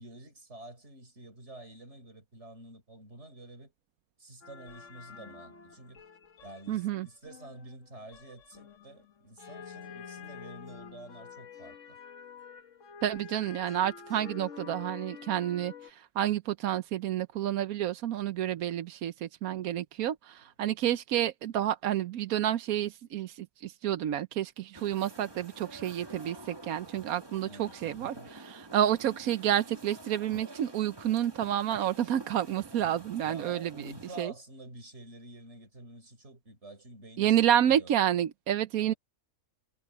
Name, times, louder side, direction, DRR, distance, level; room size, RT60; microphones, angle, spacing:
voice 1, 0.0-3.7 4.2-6.0 6.4-12.0 27.4-28.3 33.2-37.9 38.8-39.0, right 1 dB, 45° right, 4.5 m, -49 dB
sound 1, 4.4-15.9, left 6 dB, 55° left, 1.6 m, -48 dB
voice 2, 6.7-7.1 13.0-33.9 34.2-34.3 37.2-38.9, right 11 dB, 70° right, 1.2 m, -29 dB
sound 2, 24.7-34.2, right 2 dB, 15° right, 1.6 m, -49 dB
omnidirectional pair, 1.6 m